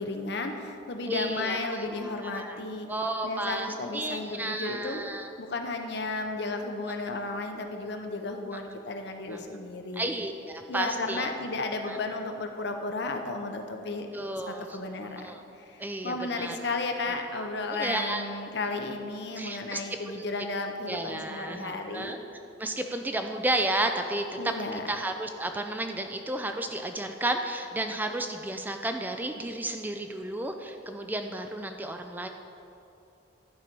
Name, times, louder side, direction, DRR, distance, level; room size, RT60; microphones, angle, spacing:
voice 1, 0.0-2.9 3.2-10.1 10.7-14.1 14.5-15.3 15.6-22.1 24.4-24.8, left 3 dB, 60° left, 4 dB, 0.7 m, -34 dB
voice 2, 1.1-1.6 2.0-2.6 2.9-5.3 9.3-9.4 10.0-11.3 11.9-12.0 14.1-14.7 15.2-15.4 15.8-16.6 17.3-17.5 17.8-18.2 19.4-19.8 20.1-20.3 20.9-22.2 22.6-24.2 24.7-32.3, right 1 dB, 10° right, 5 dB, 0.3 m, -32 dB
11.5 x 4.5 x 5.3 m, 2.8 s
head